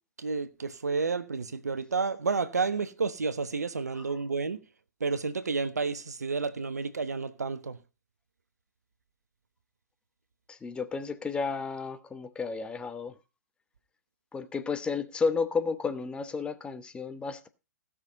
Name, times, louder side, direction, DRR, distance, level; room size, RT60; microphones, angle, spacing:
voice 1, 0.2-4.6 5.0-7.8, right 4 dB, 75° right, 1.1 m, -30 dB
voice 2, 10.5-13.2 14.3-17.5, left 4 dB, 10° left, 0.9 m, -32 dB
16.0 x 6.3 x 5.1 m
figure-of-eight pair, 115°, 9 cm